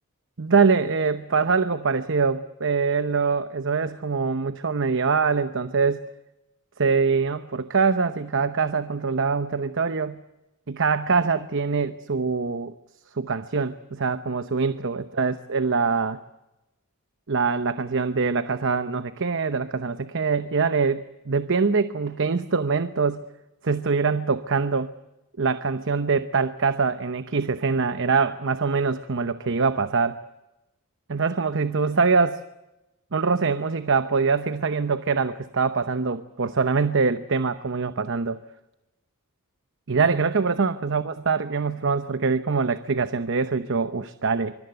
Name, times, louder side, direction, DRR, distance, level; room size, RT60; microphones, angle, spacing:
voice 1, 0.4-6.1 6.8-10.2 10.7-12.7 13.2-16.2 17.3-23.2 23.6-24.9 25.4-30.2 31.1-32.4 33.1-38.4 39.9-44.6, right 4 dB, 60° right, 11 dB, 0.9 m, -24 dB
25.0 x 22.0 x 7.9 m, 0.98 s
head